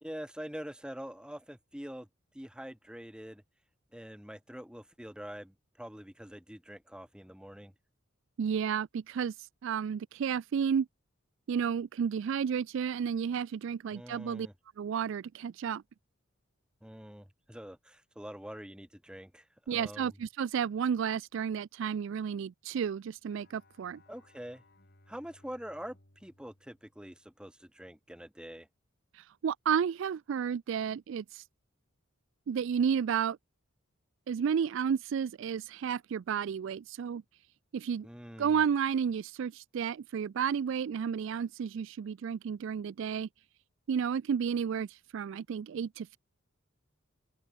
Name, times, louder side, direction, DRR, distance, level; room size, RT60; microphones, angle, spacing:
voice 1, 0.0-2.1 2.3-3.4 3.9-7.7 13.9-14.5 16.8-20.1 24.1-24.6 25.1-28.7 38.0-38.6, equal, 5° right, 1.5 m, -45 dB
voice 2, 8.4-9.3 9.6-10.9 11.5-14.5 14.8-15.8 19.7-24.0 29.1-31.4 32.5-33.4 34.3-37.2 37.7-38.1 38.4-43.3 43.9-46.2, right 7 dB, 60° right, 0.3 m, -32 dB
Bowed string instrument, 23.3-27.7, left 2 dB, 50° left, 3.9 m, -64 dB
open air
head